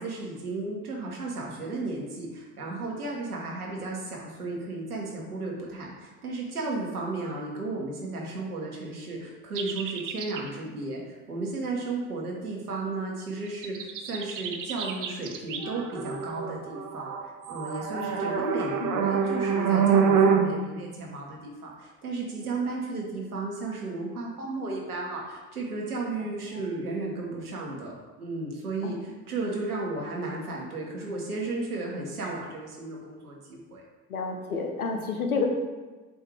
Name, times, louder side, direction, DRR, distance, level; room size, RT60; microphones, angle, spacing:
voice 1, 0.0-33.8, right 3 dB, 90° right, -2 dB, 1.1 m, -34 dB
sound 1, 9.6-10.5 13.6-20.5, right 6 dB, 45° right, 0.8 m, -26 dB
voice 2, 17.9-18.3 18.8-19.0 26.5-26.6 28.8-29.0 34.1-35.5, left 5 dB, 90° left, 3 dB, 0.8 m, -31 dB
7.3 x 2.7 x 4.8 m, 1.3 s
figure-of-eight pair, 55°, 43 cm